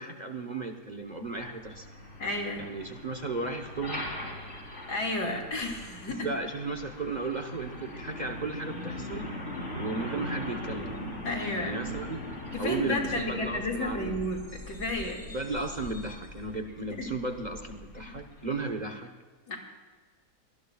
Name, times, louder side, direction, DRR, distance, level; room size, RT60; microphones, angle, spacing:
voice 1, 0.0-1.9 2.6-4.0 6.2-9.3 9.7-11.0 11.6-12.2 12.6-14.2 15.3-19.1, right 3 dB, 30° right, 4 dB, 1.0 m, -35 dB
Truck, 1.0-18.7, left 1 dB, 45° left, 3.8 m, -41 dB
voice 2, 2.2-2.7 4.9-6.3 11.2-11.7 12.5-15.2 17.0-17.1 18.0-18.2 19.5-19.6, left 2 dB, 80° left, 1 dB, 3.2 m, -32 dB
24.0 x 19.0 x 2.4 m, 1.4 s
omnidirectional pair, 1.7 m